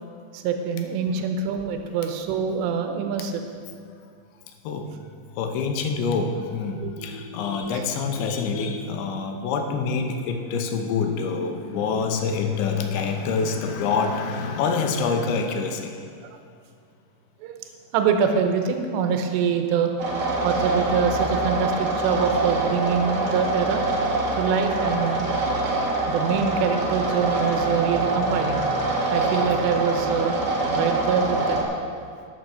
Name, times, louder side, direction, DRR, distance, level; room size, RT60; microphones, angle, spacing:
voice 1, 0.3-3.4 6.8-6.9 16.2-16.4 17.4-17.6 17.9-19.9 20.4-23.8 24.4-25.3 26.1-28.6 29.1-31.7, right 6 dB, 80° right, 6 dB, 2.9 m, -25 dB
voice 2, 5.4-16.0, left 5 dB, 90° left, 5 dB, 3.2 m, -26 dB
sound 1, 20.0-31.6, right 2 dB, 60° right, 1.6 m, -25 dB
12.5 x 6.5 x 6.4 m, 2.2 s
omnidirectional pair, 5.1 m